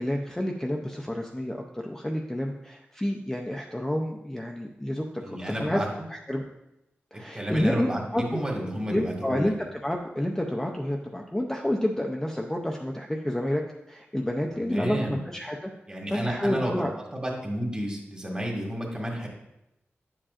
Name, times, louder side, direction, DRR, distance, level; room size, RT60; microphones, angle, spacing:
voice 1, 0.0-5.8 6.1-6.4 7.1-7.9 8.1-8.4 8.9-13.6 13.9-15.7 16.1-16.9, left 1 dB, 10° left, 0 dB, 0.5 m, -29 dB
voice 2, 5.2-5.9 7.1-9.5 14.5-15.2 15.9-16.8 17.1-19.3, equal, 20° right, -1 dB, 1.7 m, -31 dB
9.8 x 7.4 x 2.5 m, 0.88 s
wide cardioid pair, 140°, 4 cm